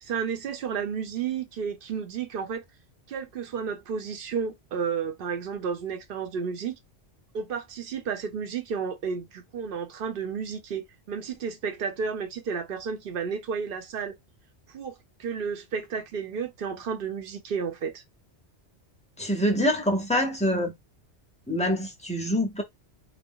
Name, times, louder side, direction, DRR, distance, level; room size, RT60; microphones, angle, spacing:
voice 1, 0.0-2.6 3.1-6.8 7.3-14.2 14.7-14.9 15.2-18.0, right 6 dB, 60° right, 0.8 m, -32 dB
voice 2, 19.2-20.7 21.5-22.6, equal, 10° left, 0.5 m, -25 dB
2.4 x 2.0 x 3.6 m
omnidirectional pair, 1.1 m